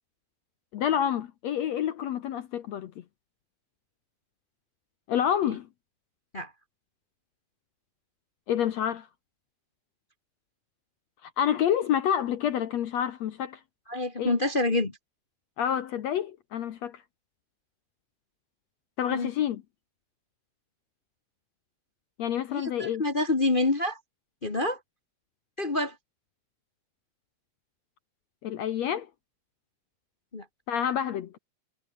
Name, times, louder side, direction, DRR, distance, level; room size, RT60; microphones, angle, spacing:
voice 1, 0.7-2.9 5.1-5.7 8.5-9.1 11.2-13.6 14.2-14.3 15.6-17.0 19.0-19.6 22.2-23.0 28.4-29.1 30.7-31.4, left 9 dB, 70° left, 1.7 m, -28 dB
voice 2, 13.9-14.9 19.1-19.3 22.5-24.0 24.4-24.8 25.6-25.9 30.3-30.4, left 2 dB, 85° left, 0.4 m, -27 dB
omnidirectional pair, 4.3 m